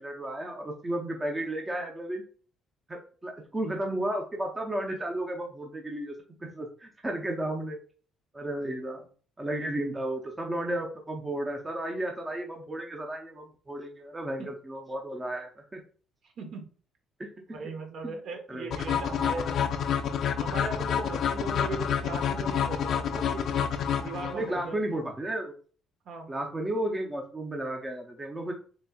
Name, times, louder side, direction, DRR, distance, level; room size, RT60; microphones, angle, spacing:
voice 1, 0.0-2.2 2.9-6.1 6.4-7.8 8.3-9.1 9.4-15.8 17.2-17.3 17.6-17.7 18.0-18.2 18.5-18.8 24.3-25.5 26.3-28.5, right 1 dB, 15° right, 1 dB, 0.6 m, -33 dB
voice 2, 16.2-16.7 17.5-20.0 20.4-23.7 24.0-24.8 26.1-26.3, right 3 dB, 60° right, 4 dB, 1.0 m, -39 dB
sound 1, 18.7-24.7, left 8 dB, 60° left, 0.5 m, -28 dB
4.1 x 3.3 x 2.3 m, 0.41 s
cardioid pair, 125°, 0 cm